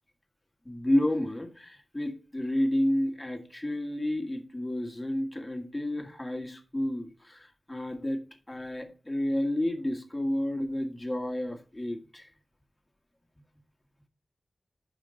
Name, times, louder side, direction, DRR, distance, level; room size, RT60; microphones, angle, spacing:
voice 1, 0.6-8.2 8.5-12.3, left 1 dB, 15° left, 1.7 m, -30 dB
9.6 x 5.8 x 3.8 m
wide cardioid pair, 115°, 0 cm